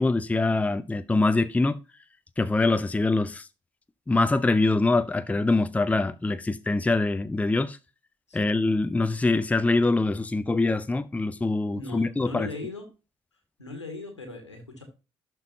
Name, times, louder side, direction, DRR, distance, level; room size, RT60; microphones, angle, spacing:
voice 1, 0.0-1.8 2.4-3.5 4.1-7.8 8.3-12.5, left 3 dB, 10° left, 0.5 m, -24 dB
voice 2, 11.7-12.8 13.6-14.8, left 3 dB, 90° left, 1.7 m, -38 dB
12.0 x 4.5 x 2.7 m
figure-of-eight pair, 45°, 14 cm